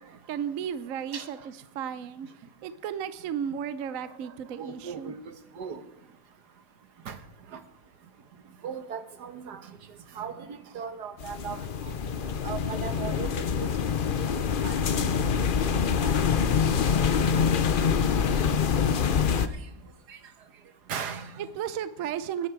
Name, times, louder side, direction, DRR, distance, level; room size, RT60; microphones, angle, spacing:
voice 1, 0.3-5.1 21.4-22.5, right 8 dB, 60° right, 13 dB, 1.0 m, -34 dB
voice 2, 4.6-5.8 7.1-7.2 7.5-7.6 8.6-9.6 10.2-11.9 12.2-13.3 14.6-15.0 16.0-16.2 17.2-17.3 19.4-19.5 20.1-20.2 20.9-21.5, right 7 dB, 80° right, 9 dB, 1.7 m, -38 dB
sound 1, 11.2-19.5, left 6 dB, 55° left, 0.6 m, -25 dB
20.5 x 9.6 x 4.6 m, 0.84 s
omnidirectional pair, 1.7 m